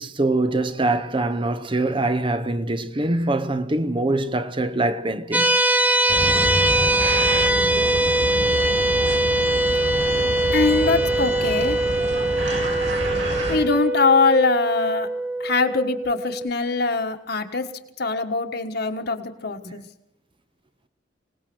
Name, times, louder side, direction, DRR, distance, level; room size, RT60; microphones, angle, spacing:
voice 1, 0.0-5.6 19.6-19.7, right 2 dB, 25° right, 0.8 m, -24 dB
sound 1, 5.3-16.5, right 1 dB, 10° right, 1.1 m, -22 dB
sound 2, 6.1-13.6, equal, 80° right, 7.7 m, -28 dB
voice 2, 10.5-11.8 13.5-15.1 15.4-17.7 18.0-19.8, left 4 dB, 55° left, 1.6 m, -22 dB
25.5 x 18.5 x 6.3 m
head